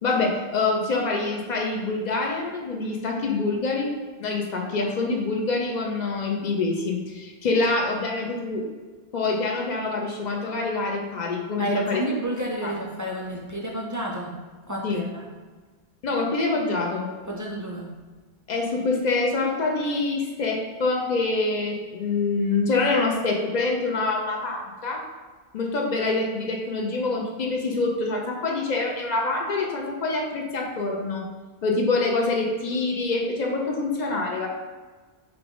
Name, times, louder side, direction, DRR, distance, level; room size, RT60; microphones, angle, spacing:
voice 1, 0.0-3.9 4.2-8.6 9.1-12.0 12.6-12.7 14.8-15.0 16.0-17.1 18.5-25.0 25.5-31.3 31.6-34.5, left 3 dB, 50° left, 1 dB, 0.7 m, -25 dB
voice 2, 11.6-14.4 14.7-15.3 17.3-17.9, right 1 dB, 30° right, -2 dB, 0.4 m, -30 dB
5.1 x 2.3 x 3.8 m, 1.4 s
omnidirectional pair, 1.1 m